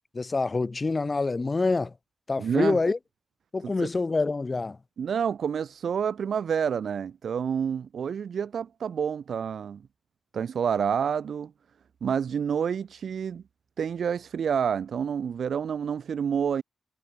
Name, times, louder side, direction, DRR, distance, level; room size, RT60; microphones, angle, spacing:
voice 1, 0.1-1.9 2.3-3.0 3.5-4.8, left 3 dB, 25° left, 2.0 m, -26 dB
voice 2, 2.4-2.8 3.6-3.9 5.0-9.8 10.3-11.5 12.0-13.4 13.8-16.6, right 7 dB, 60° right, 2.3 m, -28 dB
wide cardioid pair, 180°, 0 cm